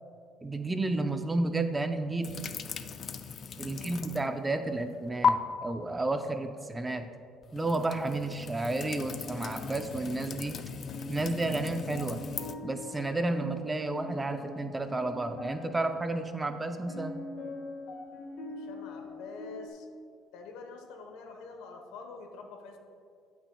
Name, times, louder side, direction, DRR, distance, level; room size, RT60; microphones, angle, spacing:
voice 1, 0.4-2.4 3.6-7.1 7.5-10.6 11.1-12.2 12.6-17.2, right 2 dB, 15° right, 8 dB, 0.5 m, -31 dB
sound 1, 2.2-4.4 4.7-5.3 7.4-12.6, left 6 dB, 45° left, 0.4 m, -36 dB
voice 2, 3.6-4.0 18.5-19.9 20.3-22.8, left 4 dB, 90° left, 4 dB, 1.1 m, -46 dB
sound 2, 8.8-19.7, left 2 dB, 70° left, 1.5 m, -44 dB
15.5 x 5.9 x 2.3 m, 2.4 s
cardioid pair, 110°, 0 cm